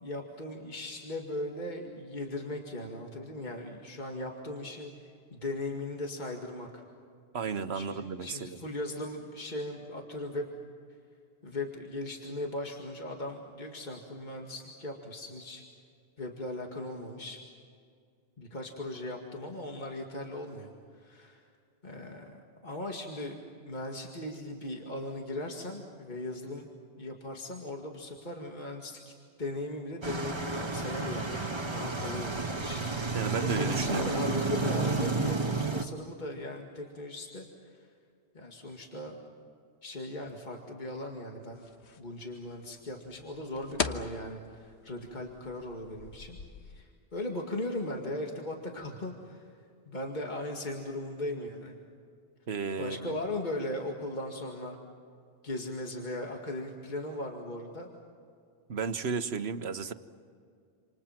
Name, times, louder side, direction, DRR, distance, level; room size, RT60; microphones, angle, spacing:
voice 1, 0.0-6.8 7.7-10.4 11.4-15.6 16.2-17.4 18.4-21.5 21.8-23.4 23.6-26.7 27.0-29.1 29.4-35.4 35.7-37.9 38.3-39.2 39.8-41.6 42.0-46.4 46.6-49.5 49.9-51.8 52.8-54.8 55.4-57.9, left 1 dB, 45° left, 1 dB, 2.3 m, -38 dB
voice 2, 7.3-8.6 33.1-34.2 52.5-53.2 58.7-59.9, right 5 dB, 75° right, 10 dB, 1.4 m, -33 dB
sound 1, 30.0-35.9, right 3 dB, 25° right, 1.4 m, -31 dB
sound 2, 41.5-46.8, left 5 dB, 90° left, 1.5 m, -40 dB
28.0 x 28.0 x 5.9 m, 2.3 s
omnidirectional pair, 1.1 m